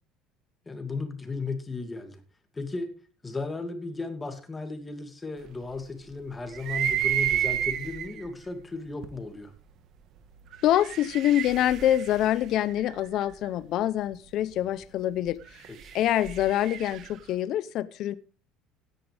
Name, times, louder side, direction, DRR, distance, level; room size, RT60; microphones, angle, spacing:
voice 1, 0.7-2.2 2.5-2.9 3.2-9.5 15.7-15.9, left 3 dB, 15° left, 7 dB, 2.5 m, -35 dB
sound 1, 6.5-8.2 9.0-9.1 10.5-13.3 15.4-17.2, right 10 dB, 50° right, 1.5 m, -30 dB
voice 2, 10.6-15.6 15.9-18.1, left 12 dB, 55° left, 15 dB, 0.8 m, -25 dB
17.0 x 10.5 x 3.5 m, 0.36 s
cardioid pair, 145°, 0 cm